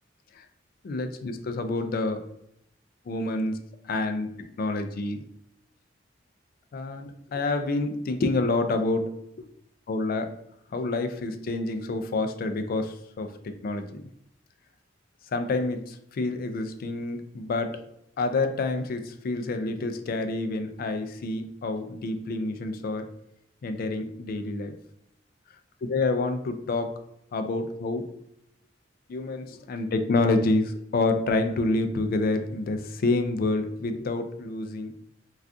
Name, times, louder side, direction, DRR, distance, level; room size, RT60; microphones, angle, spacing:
voice 1, 0.8-2.2 3.1-3.6 3.8-4.3 4.6-5.2 6.7-9.1 9.4-9.5 9.9-10.3 10.7-13.3 13.6-14.0 15.3-17.8 18.2-23.1 23.6-24.7 25.8-27.0 27.3-28.1 29.1-34.9, left 2 dB, 50° left, 8 dB, 0.3 m, -28 dB
2.5 x 2.3 x 3.4 m, 0.75 s
head